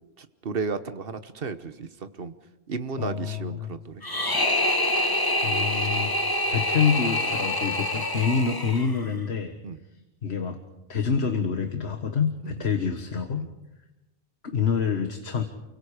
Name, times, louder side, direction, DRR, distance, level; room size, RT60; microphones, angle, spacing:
voice 1, 0.2-2.3 2.7-4.0 9.6-9.8 12.4-12.5 13.4-13.5, right 4 dB, 65° right, 11 dB, 1.4 m, -33 dB
voice 2, 3.0-3.7 5.4-6.1 6.5-9.5 10.2-10.6 10.9-13.5 14.4-15.4, left 6 dB, 90° left, 6 dB, 1.8 m, -26 dB
sound 1, 4.0-9.1, left 1 dB, 20° left, 1.4 m, -26 dB
29.0 x 24.0 x 5.0 m, 1.0 s
omnidirectional pair, 1.1 m